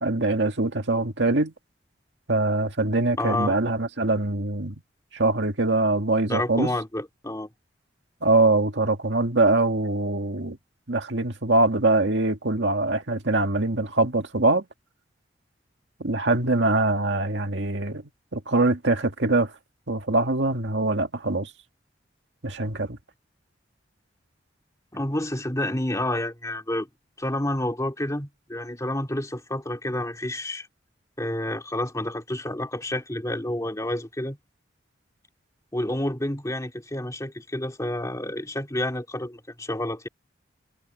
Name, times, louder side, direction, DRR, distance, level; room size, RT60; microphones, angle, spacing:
voice 1, 0.0-1.5 2.3-4.8 5.1-6.7 8.2-10.6 10.9-14.6 16.0-18.0 18.3-19.5 19.9-21.5 22.4-23.0, right 2 dB, 70° right, 2.1 m, -23 dB
voice 2, 3.2-3.6 6.3-7.5 24.9-26.9 27.2-30.7 31.2-34.4 35.7-40.1, left 1 dB, 20° left, 2.4 m, -29 dB
head